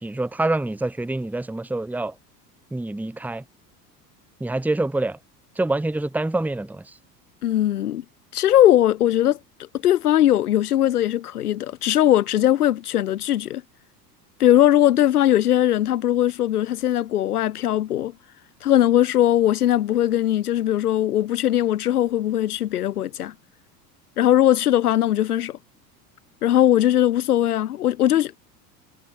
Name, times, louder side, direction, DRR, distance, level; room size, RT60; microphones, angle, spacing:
voice 1, 0.0-2.1 2.7-3.4 4.4-5.2 5.6-6.8, right 2 dB, 5° right, 1.4 m, -26 dB
voice 2, 7.4-8.0 8.3-9.4 9.8-13.6 14.4-18.1 18.6-23.3 24.2-25.6 26.4-28.4, left 12 dB, 65° left, 2.8 m, -19 dB
figure-of-eight pair, 75°, 48 cm